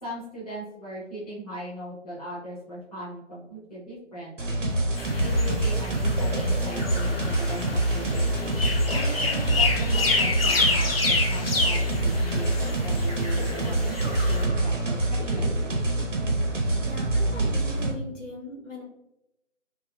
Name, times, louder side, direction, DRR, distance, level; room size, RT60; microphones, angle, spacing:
voice 1, 0.0-4.7 5.2-8.4 8.9-12.5 12.8-15.5, right 1 dB, 30° left, -7 dB, 1.0 m, -39 dB
sound 1, 4.4-17.9, right 1 dB, 80° right, 0.8 m, -25 dB
sound 2, 5.0-14.4, left 3 dB, 55° left, 0.5 m, -29 dB
sound 3, 5.9-16.5, equal, 35° right, 0.6 m, -41 dB
voice 2, 16.7-18.8, left 1 dB, 90° left, -2 dB, 1.1 m, -40 dB
3.0 x 2.4 x 2.3 m, 0.85 s
figure-of-eight pair, 165°, 36 cm